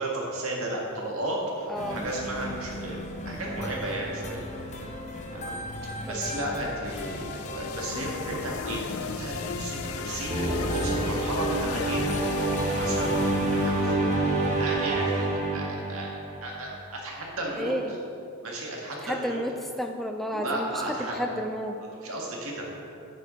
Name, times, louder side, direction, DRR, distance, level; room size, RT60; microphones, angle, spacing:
voice 1, 0.0-3.0 3.3-4.4 5.3-5.5 5.8-12.2 12.5-13.9 14.6-15.3 15.5-15.6 15.9-17.7 18.4-19.4 20.2-21.3 21.9-22.7, right 1 dB, 75° right, -2 dB, 1.8 m, -34 dB
sound 1, 1.7-14.7, left 1 dB, 35° left, 0.9 m, -37 dB
voice 2, 1.7-2.0 6.1-6.4 17.6-17.9 19.0-20.7 21.0-21.8, equal, ahead, 4 dB, 0.3 m, -31 dB
sound 2, 6.8-13.9, left 7 dB, 80° left, 0.4 m, -37 dB
sound 3, 10.3-16.7, right 2 dB, 35° right, 1.8 m, -27 dB
8.2 x 6.6 x 5.1 m, 2.7 s
head